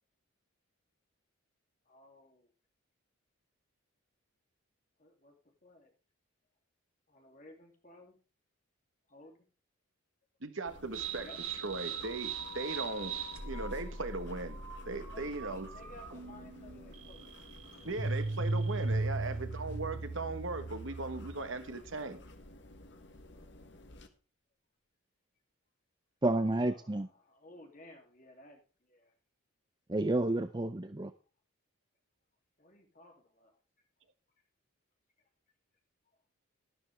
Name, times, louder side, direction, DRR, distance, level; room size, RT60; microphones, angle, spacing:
voice 1, 1.9-2.5 5.0-5.3 5.6-5.9 7.1-8.2 9.1-9.4 11.2-11.4 15.1-17.3 19.2-19.4 26.3-28.6 28.9-29.1 32.6-33.6, left 1 dB, 35° left, 2.8 m, -56 dB
voice 2, 10.4-11.3 11.6-13.1 13.4-14.6 14.9-15.7 17.8-22.2, right 3 dB, 60° right, 1.3 m, -38 dB
sound 1, 10.7-24.1, left 1 dB, 55° left, 1.4 m, -54 dB
sound 2, 10.9-21.5, right 3 dB, 80° right, 2.4 m, -38 dB
voice 3, 26.2-27.1 29.9-31.1, right 2 dB, 20° right, 0.5 m, -30 dB
12.5 x 11.5 x 3.4 m
head